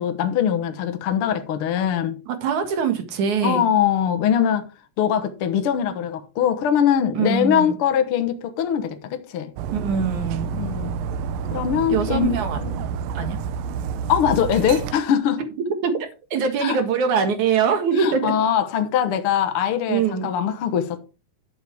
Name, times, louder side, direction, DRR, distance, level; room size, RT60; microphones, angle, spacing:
voice 1, 0.0-2.1 3.4-4.7 5.0-9.5 10.5-10.9 11.5-12.7 14.1-15.4 16.6-16.8 18.0-21.0, left 9 dB, 65° left, 1.4 m, -22 dB
voice 2, 2.3-3.6 7.1-7.8 9.7-10.5 11.9-12.6 13.1-13.4 15.8-18.3 19.9-20.3, right 6 dB, 60° right, 2.9 m, -23 dB
Dog, 9.6-14.9, right 6 dB, 85° right, 2.4 m, -29 dB
12.0 x 7.7 x 3.5 m
omnidirectional pair, 4.1 m